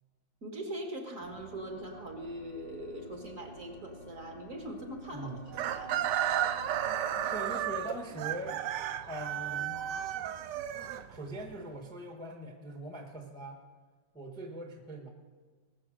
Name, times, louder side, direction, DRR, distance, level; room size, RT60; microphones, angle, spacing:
voice 1, 0.4-5.4 5.6-6.0, right 1 dB, 45° right, 3 dB, 1.9 m, -41 dB
sound 1, 1.2-7.4, left 2 dB, 80° left, 1.8 m, -51 dB
Chicken rooster, 5.5-11.5, right 10 dB, 70° right, 1.2 m, -33 dB
voice 2, 7.3-8.6 9.1-9.8 11.1-13.6 14.1-15.1, right 1 dB, 5° left, 2 dB, 1.0 m, -41 dB
19.5 x 7.1 x 6.3 m, 1.5 s
omnidirectional pair, 2.1 m